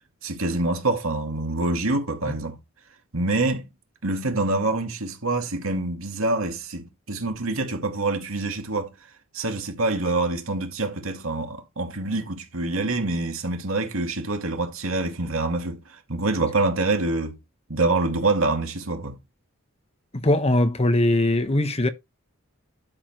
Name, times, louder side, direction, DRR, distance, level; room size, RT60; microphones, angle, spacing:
voice 1, 0.2-2.6 3.1-3.7 4.0-8.9 9.3-17.4 17.7-19.2, right 2 dB, 80° right, 2.4 m, -26 dB
voice 2, 20.1-21.9, left 1 dB, 30° left, 1.2 m, -21 dB
12.0 x 7.3 x 3.1 m
head